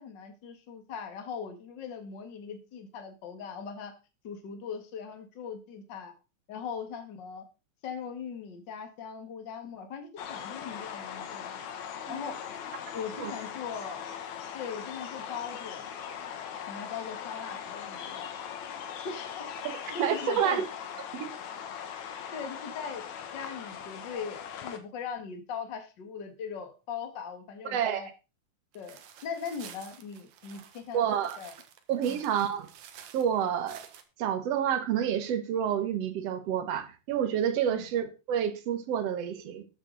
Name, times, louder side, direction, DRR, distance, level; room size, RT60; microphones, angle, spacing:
voice 1, 0.0-3.9 4.2-6.1 6.5-7.5 7.8-11.6 12.1-12.4 12.9-14.1 14.5-15.9 16.7-18.3 19.0-20.6 22.3-23.1 23.3-28.1 28.7-29.0 29.2-31.0 31.4-31.5 32.1-32.2 37.7-37.8, left 6 dB, 40° left, 2.1 m, -40 dB
sound 1, 10.2-24.8, left 8 dB, 65° left, 2.5 m, -40 dB
voice 2, 19.9-20.7 21.1-21.3 27.6-28.0 30.9-31.4 31.9-32.7 33.1-33.8 34.2-39.7, right 9 dB, 60° right, 2.2 m, -29 dB
sound 2, 28.7-34.0, right 9 dB, 85° right, 2.9 m, -51 dB
13.0 x 9.6 x 4.0 m
omnidirectional pair, 3.7 m